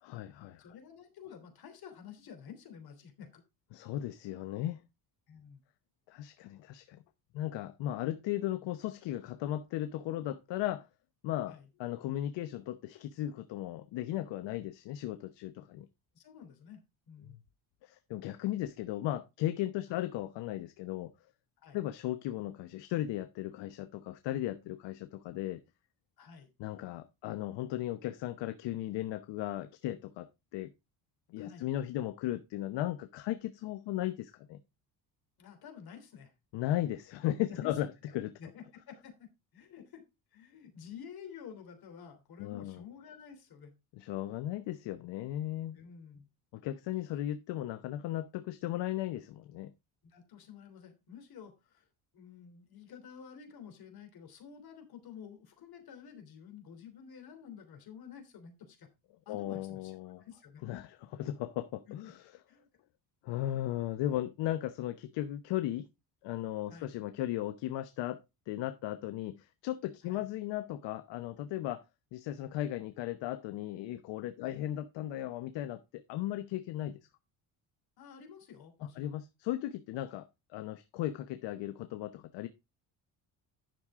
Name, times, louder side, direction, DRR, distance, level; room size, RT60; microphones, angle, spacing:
voice 1, 0.0-0.6 3.7-4.8 6.1-7.0 7.3-10.9 11.2-15.9 17.2-17.4 17.8-21.1 21.7-25.6 26.6-30.7 31.3-34.6 36.5-37.9 38.1-38.3 42.4-42.8 44.0-45.8 46.5-49.7 59.3-60.2 60.6-62.2 63.2-65.9 66.2-68.2 68.5-71.8 72.1-77.0 78.8-82.5, left 13 dB, 90° left, 0.9 m, -36 dB
voice 2, 0.6-3.4 5.3-5.6 11.5-11.7 16.1-16.8 17.1-17.4 19.9-20.0 21.6-21.8 26.2-26.5 31.4-31.7 35.4-36.3 37.5-37.8 38.4-39.3 39.5-40.0 40.3-43.7 45.7-46.3 50.0-51.9 52.1-58.9 59.2-60.6 61.9-62.0 62.5-62.7 66.7-66.9 70.0-70.3 74.4-74.6 78.0-79.1 80.1-80.2, left 7 dB, 60° left, 3.2 m, -50 dB
10.5 x 6.4 x 3.6 m
cardioid pair, 130°, 42 cm